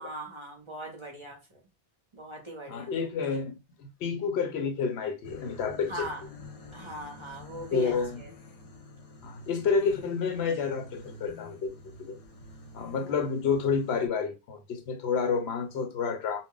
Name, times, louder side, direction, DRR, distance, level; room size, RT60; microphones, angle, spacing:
voice 1, 0.0-1.4 2.1-2.9 5.9-6.2 6.7-7.9 8.2-8.3 13.0-13.1, equal, 35° right, 0.6 m, -39 dB
voice 2, 2.7-6.1 7.7-8.2 9.2-11.7 12.0-12.2 12.7-16.4, left 5 dB, 85° left, 0.9 m, -29 dB
sound 1, 5.2-14.1, left 2 dB, 55° left, 0.4 m, -48 dB
2.3 x 2.0 x 3.7 m
omnidirectional pair, 1.1 m